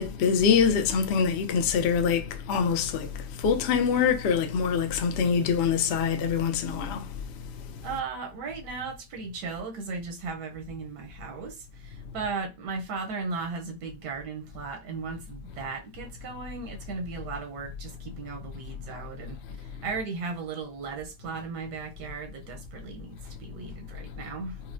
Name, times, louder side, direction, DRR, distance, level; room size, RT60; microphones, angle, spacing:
voice 1, 0.0-3.1 3.4-7.1, left 6 dB, 75° left, 0.6 m, -24 dB
voice 2, 7.8-24.6, right 4 dB, 90° right, 1.3 m, -36 dB
4.2 x 2.0 x 2.5 m
omnidirectional pair, 1.7 m